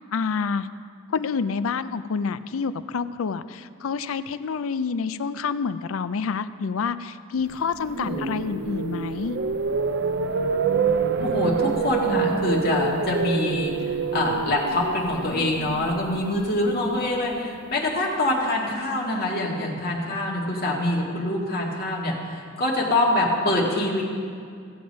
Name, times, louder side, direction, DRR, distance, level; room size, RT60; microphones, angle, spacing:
voice 1, 0.1-0.7 1.1-9.4, left 5 dB, 75° left, 13 dB, 0.4 m, -28 dB
sound 1, 7.6-17.7, right 5 dB, 55° right, 0.5 m, -27 dB
voice 2, 11.2-24.0, left 1 dB, 50° left, -2 dB, 1.9 m, -25 dB
15.5 x 7.7 x 5.2 m, 2.2 s
head